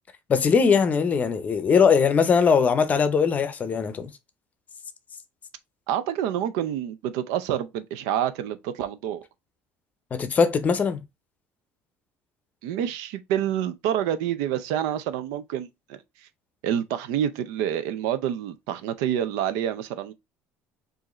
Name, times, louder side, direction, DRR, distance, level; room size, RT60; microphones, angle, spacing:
voice 1, 0.3-4.1 10.1-11.0, left 6 dB, 30° left, 0.6 m, -20 dB
voice 2, 5.9-9.3 12.6-16.0 16.6-20.1, right 10 dB, 90° right, 0.5 m, -27 dB
4.8 x 2.6 x 3.0 m
cardioid pair, 135°, 5 cm